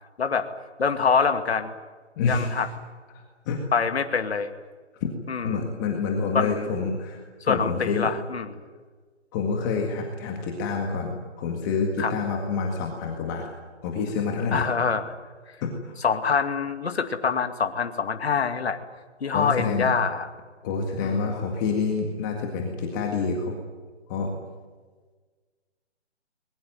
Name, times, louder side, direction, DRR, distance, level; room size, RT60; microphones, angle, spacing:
voice 1, 0.8-1.7 2.3-2.7 3.7-4.5 5.3-5.6 6.3-6.7 7.4-8.6 12.0-12.1 14.5-15.1 16.0-18.8 19.2-20.3 21.0-21.3, left 5 dB, 60° left, 6 dB, 2.4 m, -25 dB
voice 2, 2.2-2.7 3.5-3.6 5.0-5.1 5.4-7.2 7.4-8.1 9.3-13.5 13.8-14.6 15.6-16.0 19.3-19.9 20.6-23.6 24.1-24.3, left 4 dB, 15° left, 1 dB, 1.9 m, -27 dB
21.5 x 21.0 x 9.5 m, 1.4 s
hypercardioid pair, 165°, 35 cm